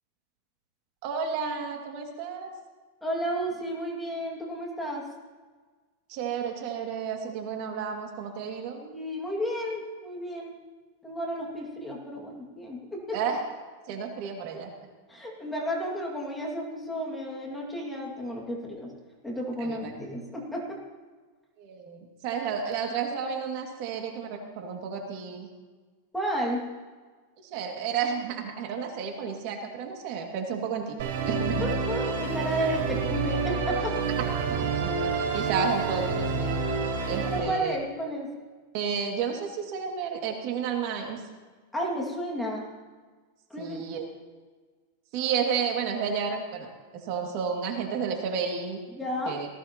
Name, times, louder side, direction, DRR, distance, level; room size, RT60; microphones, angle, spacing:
voice 1, 1.0-2.5 6.1-8.8 13.1-13.4 13.9-14.7 19.6-19.8 21.6-25.5 27.4-31.0 31.3-31.7 34.5-35.0 35.3-36.6 37.0-37.7 38.7-41.2 43.6-44.1 45.1-46.7 47.0-48.8 49.3-49.5, right 6 dB, 50° right, 2 dB, 2.2 m, -31 dB
voice 2, 3.0-5.1 8.8-10.5 11.0-13.2 15.1-18.9 19.2-20.8 26.1-26.7 31.6-34.0 37.3-38.3 41.7-42.7 43.5-43.9 48.9-49.4, equal, 5° left, -2 dB, 2.2 m, -32 dB
Musical instrument, 31.0-37.4, right 4 dB, 70° right, 4.6 m, -28 dB
19.0 x 15.0 x 3.0 m, 1.4 s
supercardioid pair, 145°, 0 cm